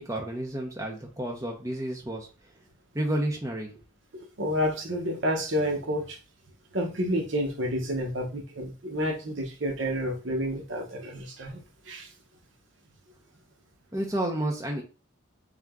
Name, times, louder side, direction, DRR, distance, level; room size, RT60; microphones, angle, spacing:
voice 1, 0.0-2.3 2.9-3.8 13.9-14.8, right 1 dB, 15° right, 0.6 m, -31 dB
voice 2, 4.4-6.2 6.7-12.1, equal, 65° right, 0.9 m, -30 dB
3.5 x 2.8 x 3.5 m
head